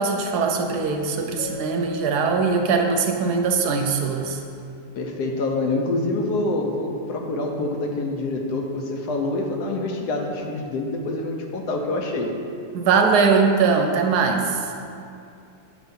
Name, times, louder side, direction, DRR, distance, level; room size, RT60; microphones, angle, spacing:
voice 1, 0.0-4.4 12.7-14.7, right 5 dB, 75° right, 3 dB, 1.1 m, -21 dB
Keyboard (musical), 1.4-3.8, equal, 20° left, 0.7 m, -37 dB
voice 2, 5.0-12.3, left 2 dB, 75° left, 2 dB, 1.2 m, -26 dB
7.9 x 3.1 x 5.2 m, 2.5 s
omnidirectional pair, 1.8 m